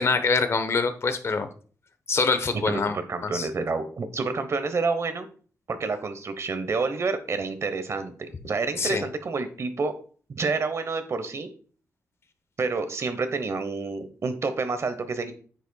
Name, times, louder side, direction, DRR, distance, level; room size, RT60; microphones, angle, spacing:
voice 1, 0.0-1.5 2.1-3.0 3.2-3.5 8.8-9.1, left 4 dB, 50° left, 9 dB, 0.9 m, -24 dB
voice 2, 2.7-5.3 5.7-9.9 10.3-11.5 12.6-15.3, right 4 dB, 55° right, 10 dB, 1.0 m, -28 dB
9.4 x 6.8 x 2.3 m, 0.42 s
cardioid pair, 80°, 6 cm